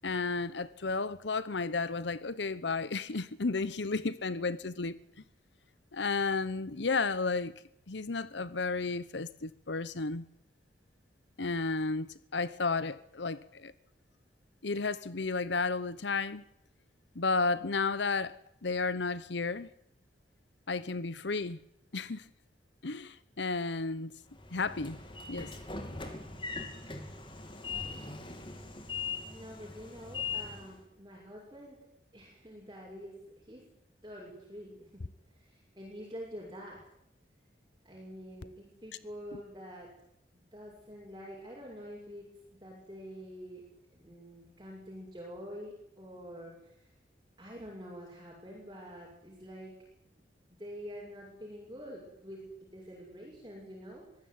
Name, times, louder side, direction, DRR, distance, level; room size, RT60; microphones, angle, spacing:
voice 1, 0.0-5.0 5.9-7.5 7.9-10.2 11.4-13.7 14.6-16.4 17.1-18.4 18.6-19.7 20.7-21.6 21.9-22.3 22.8-24.1 24.5-25.0 25.3-25.5 39.3-39.4, left 4 dB, 75° left, 0.9 m, -32 dB
Train / Sliding door, 24.3-30.8, left 5 dB, 25° left, 2.9 m, -40 dB
voice 2, 29.2-31.9 32.1-33.6 34.0-35.0 35.3-36.8 37.8-39.9 40.5-46.5 47.4-49.8 50.5-52.5 52.7-54.0, equal, 20° right, 6.6 m, -47 dB
24.0 x 16.0 x 9.7 m
head